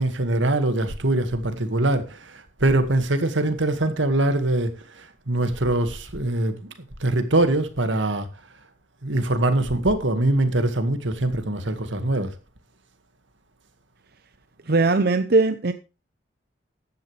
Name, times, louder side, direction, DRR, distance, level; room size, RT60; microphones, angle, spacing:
voice 1, 0.0-6.7 7.0-8.3 9.0-12.3, right 1 dB, 85° right, 2.1 m, -23 dB
voice 2, 14.7-15.7, right 3 dB, 55° right, 0.7 m, -19 dB
14.5 x 10.5 x 3.4 m
head